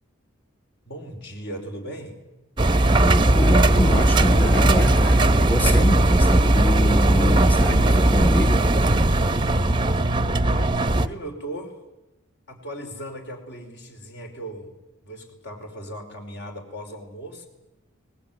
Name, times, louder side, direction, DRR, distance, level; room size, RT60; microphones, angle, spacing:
voice 1, 0.8-2.2 10.4-11.8 12.5-14.7 15.0-17.5, right 1 dB, 55° left, 4 dB, 5.0 m, -37 dB
voice 2, 2.6-8.7, equal, 10° left, 7 dB, 1.0 m, -25 dB
Engine, 2.6-11.1, right 1 dB, 25° right, 0.9 m, -18 dB
24.5 x 20.0 x 9.3 m, 1.0 s
head